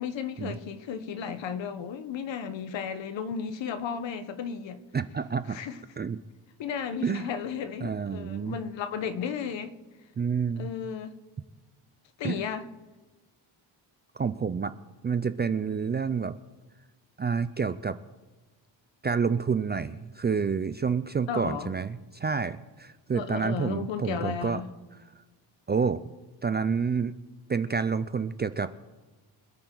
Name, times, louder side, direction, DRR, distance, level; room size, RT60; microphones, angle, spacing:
voice 1, 0.0-4.8 5.5-5.8 6.6-9.8 10.6-11.1 12.2-12.7 21.3-21.7 23.1-24.7, left 7 dB, 65° left, 1.2 m, -34 dB
voice 2, 4.9-5.6 6.0-6.2 7.0-7.3 7.8-8.6 10.2-10.7 12.2-12.4 14.2-14.7 15.0-16.4 17.2-18.0 19.0-24.6 25.7-26.0 26.4-27.1 27.5-28.7, right 5 dB, 25° right, 0.3 m, -28 dB
25.5 x 9.0 x 3.9 m
cardioid pair, 130°, 47 cm